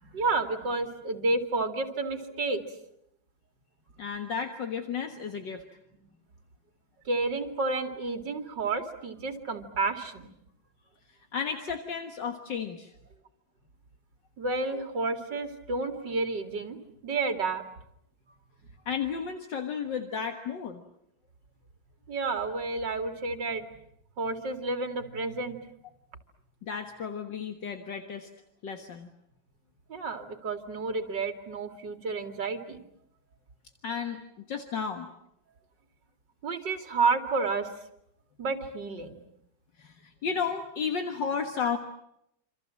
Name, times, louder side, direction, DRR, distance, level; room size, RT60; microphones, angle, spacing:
voice 1, 0.0-2.6 7.0-10.3 14.4-16.8 17.0-17.6 22.1-23.7 24.2-25.6 29.9-32.8 36.4-37.7 38.4-39.2 41.6-41.7, right 3 dB, 65° right, 6 dB, 3.0 m, -30 dB
voice 2, 4.0-5.6 11.3-12.9 18.9-20.8 26.6-28.3 28.6-29.1 33.8-35.1 39.8-41.8, left 6 dB, 70° left, 6 dB, 2.2 m, -33 dB
27.5 x 26.5 x 7.6 m, 0.78 s
omnidirectional pair, 2.1 m